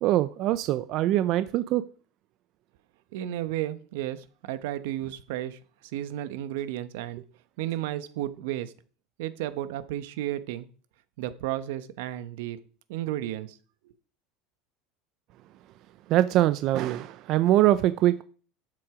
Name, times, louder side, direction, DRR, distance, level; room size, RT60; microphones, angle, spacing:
voice 1, 0.0-1.8 16.1-18.2, right 14 dB, 45° right, 0.5 m, -23 dB
voice 2, 3.1-5.6 5.9-7.2 7.6-8.7 9.2-10.7 11.2-12.6 12.9-13.6, right 13 dB, 80° right, 1.0 m, -33 dB
12.5 x 7.6 x 4.9 m
cardioid pair, 165°, 0 cm